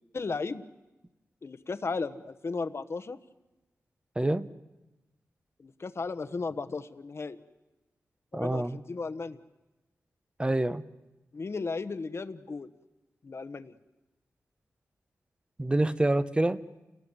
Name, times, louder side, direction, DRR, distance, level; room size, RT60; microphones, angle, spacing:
voice 1, 0.1-0.6 1.4-3.2 5.6-7.4 8.3-9.4 11.3-12.7 13.2-13.7, left 4 dB, 50° left, 10 dB, 1.1 m, -35 dB
voice 2, 4.2-4.5 8.3-8.8 10.4-10.8 15.6-16.6, right 1 dB, 15° right, 13 dB, 0.9 m, -26 dB
29.5 x 18.5 x 8.1 m, 1.1 s
wide cardioid pair, 100°, 6 cm